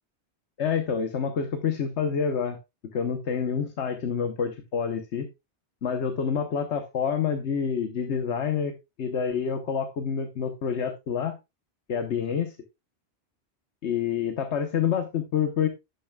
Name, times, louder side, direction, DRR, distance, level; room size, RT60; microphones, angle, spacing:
voice 1, 0.6-2.6 2.9-5.3 5.8-11.4 11.9-12.5 13.8-15.7, left 7 dB, 90° left, 8 dB, 1.3 m, -27 dB
11.5 x 8.8 x 2.3 m, 0.22 s
omnidirectional pair, 1.1 m